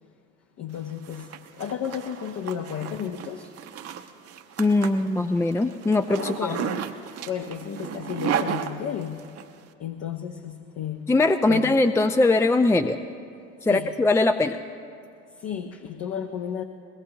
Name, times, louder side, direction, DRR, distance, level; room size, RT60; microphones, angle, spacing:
voice 1, 0.6-3.5 6.2-6.8 7.2-9.3 9.8-11.1 11.5-11.7 13.7-13.9 15.4-16.6, left 8 dB, 45° left, 3 dB, 1.0 m, -33 dB
Zipper (clothing), 0.8-9.5, right 9 dB, 45° right, 1.0 m, -34 dB
voice 2, 4.6-6.6 11.1-13.0 13.6-14.6, left 2 dB, 10° left, 8 dB, 0.5 m, -21 dB
22.0 x 18.5 x 2.9 m, 2.3 s
hypercardioid pair, 65°, 34 cm